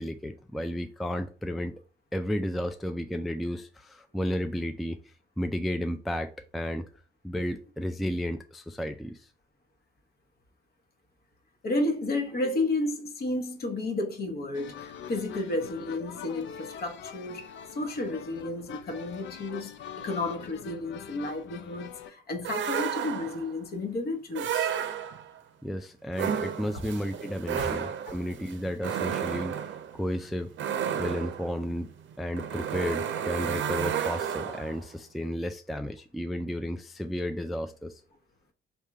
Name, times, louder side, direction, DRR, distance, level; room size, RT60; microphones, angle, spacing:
voice 1, 0.0-1.7 2.1-5.0 5.4-6.9 7.2-9.3 25.6-29.6 29.9-30.5 31.0-31.9 32.2-38.0, equal, ahead, 0.3 m, -33 dB
voice 2, 11.6-24.7 27.6-27.7, left 2 dB, 50° left, 1.0 m, -32 dB
sound 1, 14.5-22.1, left 8 dB, 70° left, 0.5 m, -44 dB
sound 2, 22.4-23.5 24.3-25.4 26.1-34.8, right 8 dB, 70° right, 0.6 m, -32 dB
3.5 x 2.7 x 4.6 m
cardioid pair, 90°, 20 cm